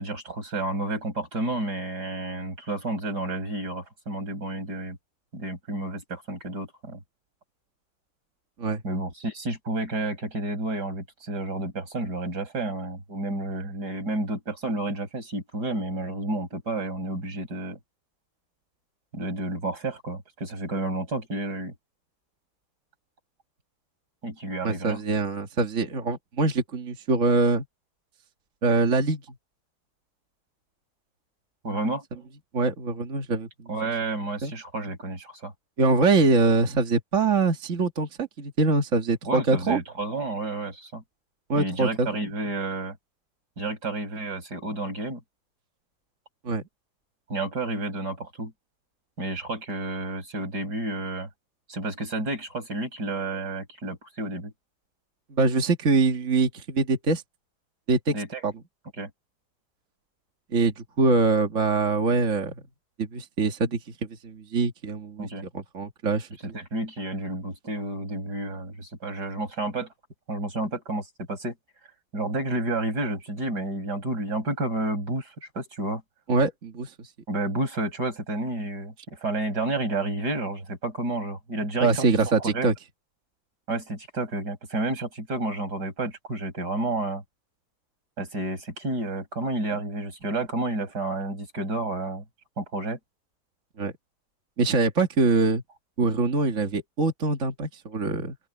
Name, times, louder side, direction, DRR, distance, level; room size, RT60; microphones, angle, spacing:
voice 1, 0.0-5.0 5.3-7.0 8.8-17.8 19.1-21.7 24.2-25.0 31.6-32.0 33.7-35.5 39.3-41.0 41.5-43.0 43.6-45.2 47.3-48.5 49.2-51.3 51.7-54.5 58.1-58.4 59.0-59.1 65.2-65.5 66.4-69.9 70.3-71.5 72.1-76.0 77.3-82.7 83.7-87.2 88.2-92.2 92.6-93.0, right 2 dB, 75° right, 6.7 m, -30 dB
voice 2, 24.6-27.6 28.6-29.2 32.5-33.5 34.4-34.5 35.8-39.8 41.5-42.3 46.4-46.6 55.3-57.2 57.9-58.1 58.4-58.5 60.5-62.5 63.0-63.8 64.2-65.3 65.5-66.3 76.3-77.1 81.8-82.7 93.8-93.9 94.6-95.6 96.0-98.4, right 3 dB, 50° right, 2.0 m, -23 dB
open air
omnidirectional pair, 1.8 m